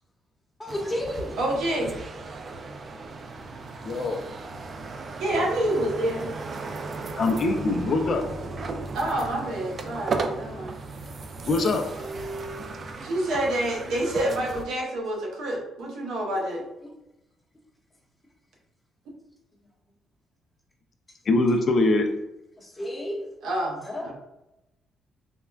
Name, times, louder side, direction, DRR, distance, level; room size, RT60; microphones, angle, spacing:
voice 1, 0.6-1.4 16.6-16.9 21.1-21.2 22.6-23.2 23.8-24.1, left 1 dB, 15° left, 0.9 m, -32 dB
sound 1, 0.7-14.6, right 3 dB, 45° right, 0.3 m, -36 dB
voice 2, 1.4-1.9 5.2-6.3 8.9-10.7 13.0-16.6 23.4-24.1, right 1 dB, 80° right, 0.7 m, -27 dB
voice 3, 3.8-4.2 7.2-8.3 11.5-11.8 21.3-22.1, left 2 dB, 50° left, 0.3 m, -22 dB
3.5 x 2.1 x 2.2 m
cardioid pair, 90°, 0 cm